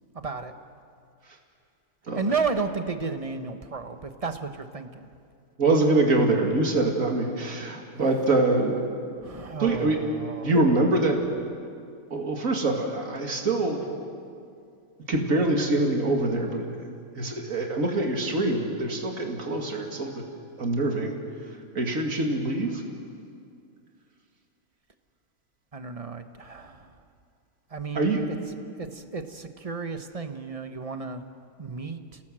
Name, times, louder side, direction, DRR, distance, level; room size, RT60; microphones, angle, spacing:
voice 1, 0.1-0.5 2.1-5.1 9.2-10.6 25.7-26.9 27.7-28.1 28.8-31.2 31.6-32.2, right 4 dB, 25° right, 7 dB, 1.1 m, -33 dB
voice 2, 5.6-8.8 9.6-10.0 10.4-11.2 12.1-13.8 15.1-16.9 17.1-20.2 20.6-21.1 21.7-22.8 27.9-28.2, right 2 dB, 65° right, 1 dB, 2.8 m, -24 dB
29.0 x 18.0 x 7.7 m, 2.3 s
omnidirectional pair, 1.5 m